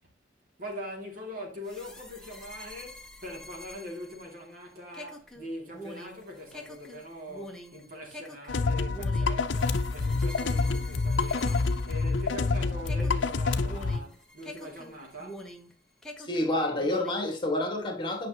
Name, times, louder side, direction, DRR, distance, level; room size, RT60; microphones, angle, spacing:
voice 1, 0.6-15.5, equal, 50° right, 2.6 m, -42 dB
sound 1, 1.6-12.5 12.9-15.7 16.0-17.3, equal, 5° left, 1.1 m, -46 dB
sound 2, 8.5-14.0, left 3 dB, 75° left, 0.6 m, -27 dB
voice 2, 16.2-18.3, left 1 dB, 25° left, 1.8 m, -29 dB
9.3 x 5.7 x 2.9 m
head